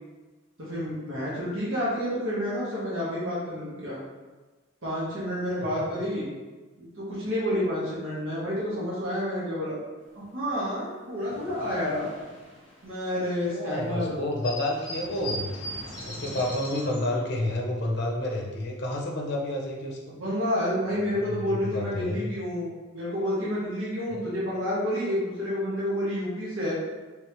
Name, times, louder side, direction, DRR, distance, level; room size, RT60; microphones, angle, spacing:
voice 1, 0.6-4.0 4.8-6.3 6.8-9.8 10.1-12.1 12.8-14.2 16.6-17.2 20.1-26.7, equal, 70° right, -8 dB, 1.2 m, -29 dB
sound 1, 10.7-10.8 11.0-13.5 13.9-14.0 14.2-17.0, equal, 20° left, 1.2 m, -39 dB
voice 2, 13.5-15.5 16.1-20.2 21.3-22.2 24.1-24.2, left 1 dB, 55° left, -1 dB, 0.7 m, -30 dB
3.3 x 3.3 x 3.0 m, 1.3 s
head